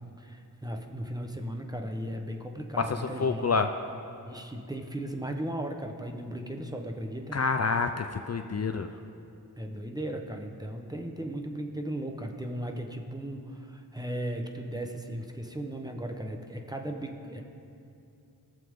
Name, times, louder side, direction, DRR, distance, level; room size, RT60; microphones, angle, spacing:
voice 1, 0.2-3.5 4.2-7.4 9.6-17.4, right 1 dB, 10° right, 3 dB, 1.0 m, -36 dB
voice 2, 3.2-3.7 7.3-8.9, left 4 dB, 45° left, 7 dB, 0.5 m, -27 dB
19.0 x 7.0 x 3.7 m, 2.6 s
wide cardioid pair, 60°, 37 cm